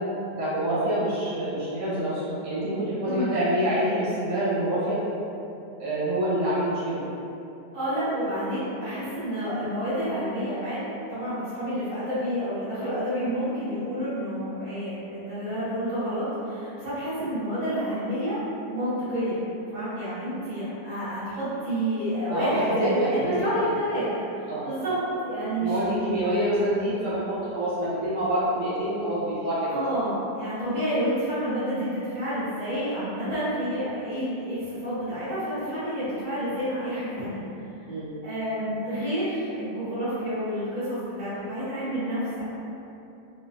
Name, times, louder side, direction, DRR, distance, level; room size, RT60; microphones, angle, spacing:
voice 1, 0.4-5.0 5.8-7.0 22.3-23.7 24.5-24.7 25.6-29.8 37.9-38.1, right 1 dB, 85° right, -11 dB, 1.8 m, -26 dB
voice 2, 3.0-3.4 7.7-18.4 18.7-19.4 19.7-26.1 29.7-37.7 38.2-42.4, equal, 65° right, -13 dB, 1.9 m, -29 dB
4.0 x 2.5 x 2.5 m, 2.8 s
omnidirectional pair, 1.7 m